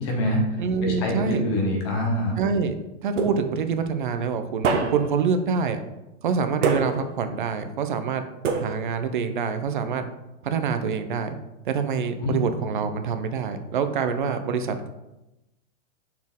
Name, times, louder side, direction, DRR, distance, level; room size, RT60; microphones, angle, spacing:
voice 1, 0.1-0.4 0.8-2.4 12.2-12.4, left 1 dB, 20° left, 1 dB, 0.8 m, -24 dB
voice 2, 0.6-1.4 2.4-2.7 3.0-5.8 6.2-8.2 8.5-10.0 10.4-11.4 11.6-14.9, right 6 dB, 45° right, 8 dB, 0.5 m, -26 dB
sound 1, 3.2-3.8 4.6-5.3 6.6-7.3 8.4-9.1, right 4 dB, 75° right, 1.0 m, -26 dB
6.2 x 4.3 x 3.5 m, 0.97 s
hypercardioid pair, 175°, 37 cm